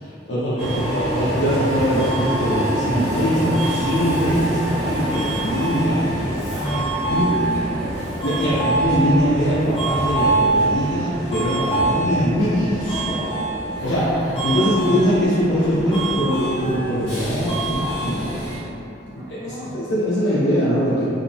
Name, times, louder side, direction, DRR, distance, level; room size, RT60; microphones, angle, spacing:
voice 1, 0.0-0.7 0.9-6.8 7.1-7.3 8.2-13.4 13.8-14.1 14.4-18.4 19.3-19.4 19.7-21.1, equal, 70° left, -10 dB, 0.5 m, -22 dB
Subway metro underground, 0.6-18.6, right 1 dB, 35° left, 0.8 m, -25 dB
voice 2, 7.0-8.1 8.3-8.6 19.0-19.7, left 1 dB, 15° right, -15 dB, 0.7 m, -35 dB
2.8 x 2.1 x 2.6 m, 2.7 s
head